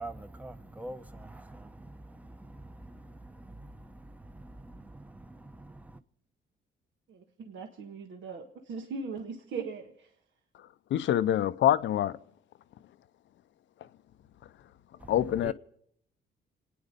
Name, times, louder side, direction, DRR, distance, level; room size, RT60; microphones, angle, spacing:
voice 1, 0.0-6.0 15.0-15.5, right 2 dB, 5° right, 0.8 m, -46 dB
voice 2, 7.1-9.9, right 5 dB, 70° right, 1.4 m, -39 dB
voice 3, 10.9-12.2 15.1-15.5, left 11 dB, 70° left, 0.6 m, -25 dB
27.5 x 9.6 x 5.3 m
cardioid pair, 90°, 20 cm